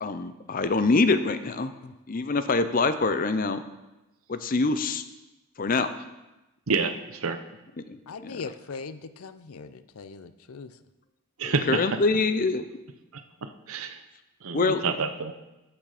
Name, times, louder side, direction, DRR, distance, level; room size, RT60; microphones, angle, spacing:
voice 1, 0.0-1.7 2.1-3.6 4.3-5.0 5.6-5.9 7.9-8.4 11.4-12.7 14.5-14.8, left 3 dB, 40° left, 11 dB, 0.5 m, -25 dB
voice 2, 8.1-10.7, left 4 dB, 85° left, 12 dB, 0.6 m, -40 dB
voice 3, 11.4-11.8 13.7-14.0 14.4-15.3, right 4 dB, 75° right, 9 dB, 0.8 m, -27 dB
13.5 x 6.2 x 4.9 m, 1.0 s
head